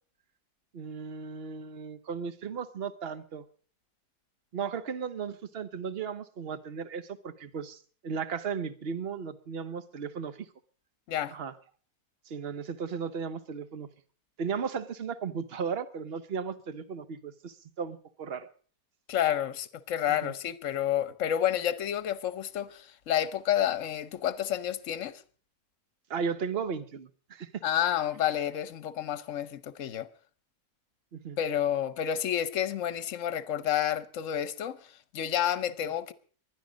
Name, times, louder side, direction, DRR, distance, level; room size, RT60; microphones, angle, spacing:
voice 1, 0.7-3.4 4.5-10.5 11.3-11.5 12.3-13.9 14.4-18.5 20.2-20.3 26.1-27.6 31.1-31.4, right 6 dB, 45° right, 1.1 m, -35 dB
voice 2, 19.1-25.2 27.6-30.1 31.4-34.8 35.1-36.1, left 10 dB, 55° left, 1.2 m, -30 dB
20.0 x 12.0 x 5.1 m
omnidirectional pair, 1.7 m